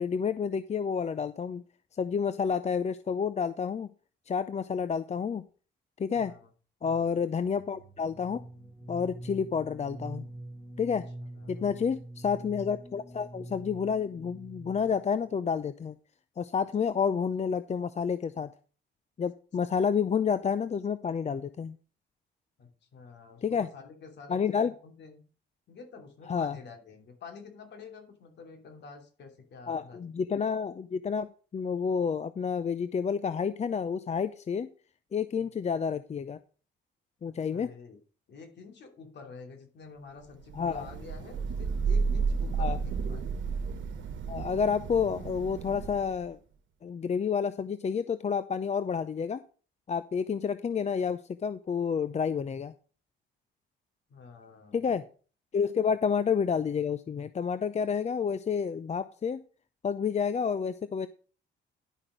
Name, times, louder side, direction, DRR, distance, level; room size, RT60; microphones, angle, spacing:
voice 1, 0.0-1.6 2.0-3.9 4.3-5.4 6.0-6.3 6.8-8.4 8.9-10.3 10.8-11.1 11.5-16.0 16.4-18.5 19.2-21.8 23.4-23.7 24.3-24.7 26.3-26.6 29.7-34.7 35.1-36.4 37.2-37.7 40.5-40.9 42.6-42.8 44.3-46.4 46.8-49.4 49.9-52.7 54.7-55.0 55.5-59.4 59.8-61.1, left 6 dB, 35° left, 14 dB, 0.6 m, -29 dB
voice 2, 6.1-6.5 6.8-7.2 11.3-11.9 22.6-25.2 25.7-30.3 35.4-35.5 37.3-38.0 38.3-43.4 54.1-55.0, left 5 dB, 60° left, 4 dB, 2.9 m, -49 dB
sound 1, 7.5-15.1, right 1 dB, 10° left, 2.1 m, -45 dB
Thunder / Rain, 40.5-46.3, right 5 dB, 70° right, 1.3 m, -32 dB
11.0 x 5.9 x 5.1 m, 0.38 s
cardioid pair, 90°, 20 cm